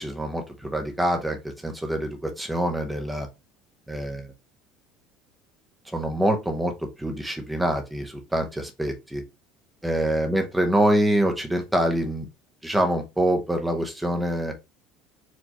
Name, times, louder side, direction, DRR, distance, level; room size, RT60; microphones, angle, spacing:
voice 1, 0.0-1.4 1.6-3.3 3.9-4.3 5.9-6.7 7.0-9.2 9.8-12.3 12.6-14.5, right 1 dB, 5° right, 0.6 m, -25 dB
4.3 x 2.8 x 2.9 m
cardioid pair, 165°, 0 cm